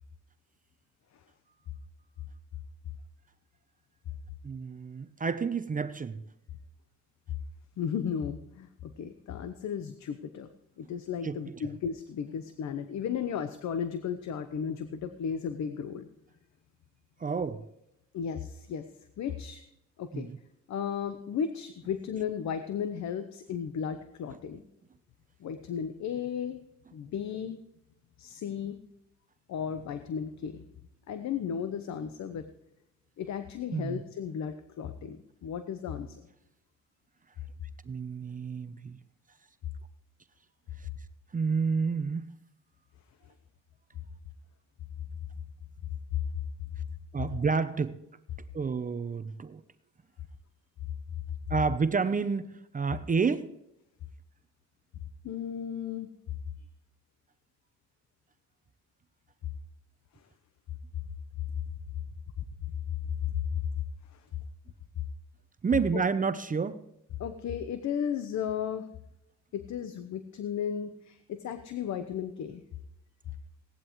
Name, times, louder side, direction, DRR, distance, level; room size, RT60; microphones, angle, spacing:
voice 1, 4.4-6.2 11.2-11.6 17.2-17.6 20.1-20.4 33.7-34.0 37.9-39.0 41.3-42.2 47.1-48.0 48.5-49.6 51.5-53.5 65.6-66.8, right 5 dB, 25° right, 11 dB, 0.7 m, -29 dB
voice 2, 7.8-10.5 10.8-16.1 18.1-18.9 19.2-19.6 20.0-20.3 20.7-24.6 25.4-26.6 26.9-27.6 28.2-28.8 29.5-30.7 31.1-32.5 33.2-36.3 55.2-56.1 60.1-60.2 63.3-63.6 64.1-64.3 65.9-66.0 67.2-68.9 69.5-72.6, left 7 dB, 65° left, 10 dB, 1.0 m, -35 dB
17.5 x 11.5 x 3.1 m, 0.84 s
cardioid pair, 90°, 30 cm